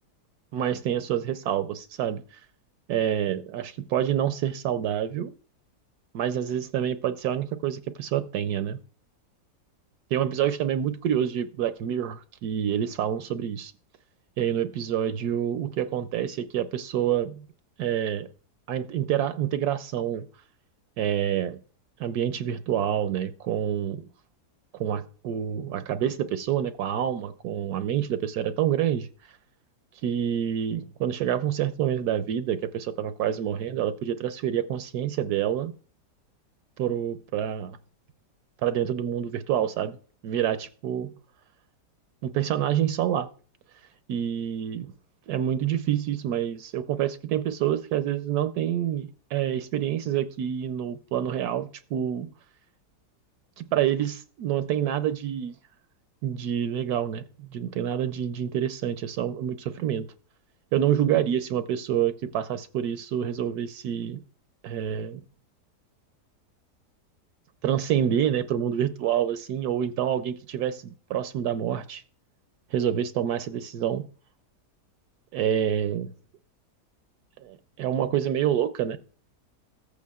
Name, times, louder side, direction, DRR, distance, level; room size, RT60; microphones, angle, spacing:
voice 1, 0.5-2.2 2.9-3.6 3.9-5.3 6.1-8.8 10.1-13.7 14.4-17.5 17.8-18.3 18.7-20.3 21.0-21.6 22.0-23.9 24.8-29.1 30.0-35.7 36.8-37.8 38.6-40.0 40.2-41.1 42.2-43.3 44.1-44.9 45.3-52.3 53.6-55.6 56.2-60.1 60.7-64.2 64.6-65.2 67.6-72.0 72.7-74.1 75.3-76.1 77.4-79.0, right 10 dB, 75° right, 11 dB, 1.1 m, -27 dB
14.5 x 8.4 x 2.3 m, 0.41 s
omnidirectional pair, 1.8 m